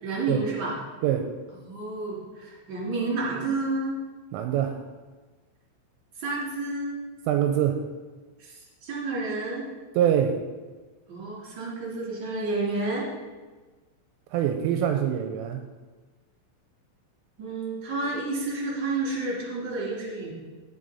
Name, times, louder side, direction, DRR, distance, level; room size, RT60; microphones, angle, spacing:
voice 1, 0.0-0.7 1.6-3.9 6.2-7.0 8.4-9.7 11.1-13.1 17.4-20.3, right 3 dB, 30° right, -6 dB, 3.1 m, -30 dB
voice 2, 4.3-4.8 7.3-7.9 10.0-10.4 14.3-15.6, right 10 dB, 85° right, 5 dB, 3.1 m, -24 dB
18.0 x 6.4 x 4.1 m, 1.3 s
omnidirectional pair, 5.9 m